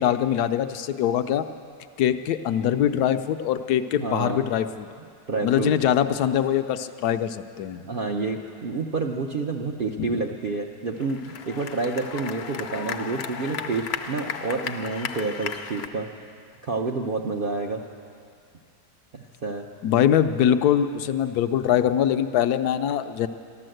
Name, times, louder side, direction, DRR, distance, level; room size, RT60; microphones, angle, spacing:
voice 1, 0.0-1.4 2.0-4.9 5.4-7.8 10.0-10.1 19.8-23.3, left 10 dB, 75° left, 9 dB, 1.0 m, -23 dB
voice 2, 3.9-4.4 5.3-5.7 7.8-16.1 16.6-17.8 19.1-19.7, right 3 dB, 60° right, 1 dB, 0.6 m, -29 dB
sound 1, 11.0-15.9, left 6 dB, 60° left, 0.7 m, -34 dB
13.0 x 12.5 x 7.7 m, 2.3 s
omnidirectional pair, 1.8 m